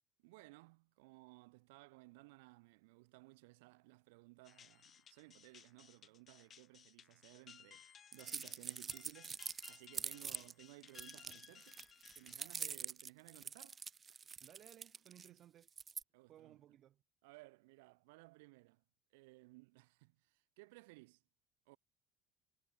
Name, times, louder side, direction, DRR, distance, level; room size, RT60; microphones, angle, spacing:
voice 1, 0.2-11.8 12.1-13.8 15.3-15.4 16.1-16.6 17.2-18.8 19.1-21.2 21.7-21.8, right 25 dB, 85° right, 5.9 m, -60 dB
sound 1, 4.4-12.7, left 8 dB, 45° left, 4.4 m, -61 dB
sound 2, 8.1-10.5 10.9-15.3 15.7-16.0, right 6 dB, 35° right, 1.3 m, -45 dB
voice 2, 14.4-15.7 16.3-17.0, right 11 dB, 55° right, 4.4 m, -61 dB
supercardioid pair, 85°, 0 cm